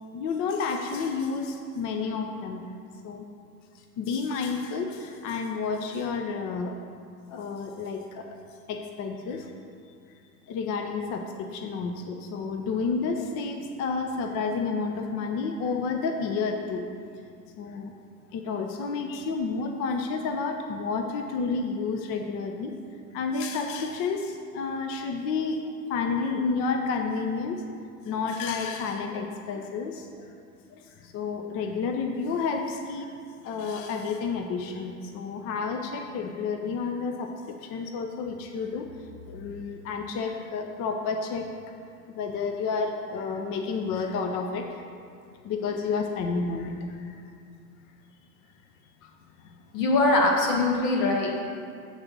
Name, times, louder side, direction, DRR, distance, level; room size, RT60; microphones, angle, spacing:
voice 1, 0.1-2.6 3.0-3.3 3.7-6.8 7.3-8.4 8.7-9.5 10.5-16.9 17.6-17.9 18.3-22.7 23.1-25.6 25.9-27.6 28.0-30.3 30.7-33.2 33.4-41.5 42.1-44.8 45.4-47.2 49.0-49.1 49.4-49.6, left 4 dB, 30° left, 4 dB, 0.5 m, -30 dB
voice 2, 49.7-51.4, left 2 dB, 65° left, 1 dB, 1.6 m, -22 dB
7.7 x 4.0 x 6.0 m, 2.3 s
hypercardioid pair, 105°, 49 cm